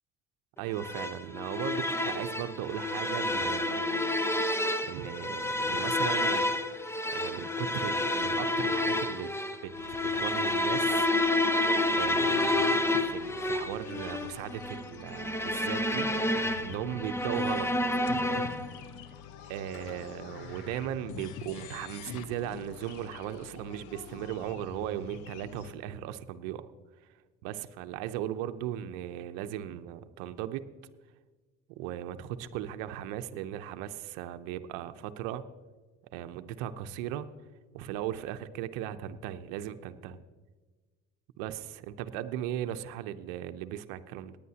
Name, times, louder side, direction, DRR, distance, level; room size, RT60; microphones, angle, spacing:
voice 1, 0.6-4.1 4.9-6.5 7.1-9.3 9.6-11.1 11.9-12.5 12.9-17.7 19.5-26.7 27.4-30.6 31.8-35.4 36.1-37.3 37.7-40.2 41.4-44.4, right 11 dB, 75° right, 9 dB, 0.8 m, -37 dB
sound 1, 0.8-18.8, left 1 dB, 10° left, 0.9 m, -29 dB
sound 2, 9.8-25.7, left 8 dB, 70° left, 0.9 m, -46 dB
Fireworks, 18.4-19.1 19.7-22.0, left 3 dB, 40° left, 2.9 m, -52 dB
18.5 x 10.0 x 2.9 m, 1.3 s
hypercardioid pair, 70°, 31 cm